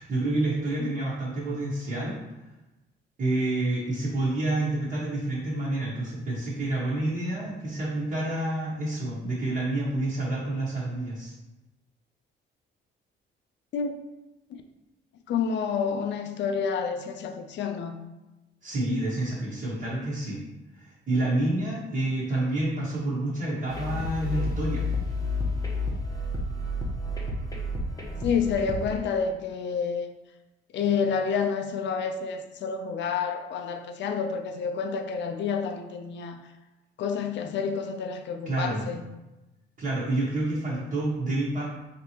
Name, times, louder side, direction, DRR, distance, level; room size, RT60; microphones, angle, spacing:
voice 1, 0.0-2.2 3.2-11.3 18.6-20.4 20.8-24.9 38.4-38.9 39.8-41.6, right 2 dB, 45° right, -9 dB, 1.1 m, -28 dB
voice 2, 15.3-18.0 28.2-30.1 30.7-36.4 37.0-39.1, left 6 dB, 65° left, 6 dB, 0.4 m, -29 dB
sound 1, 23.7-28.9, left 2 dB, 20° left, 0.7 m, -30 dB
3.4 x 2.8 x 2.9 m, 1.0 s
cardioid pair, 90°, 20 cm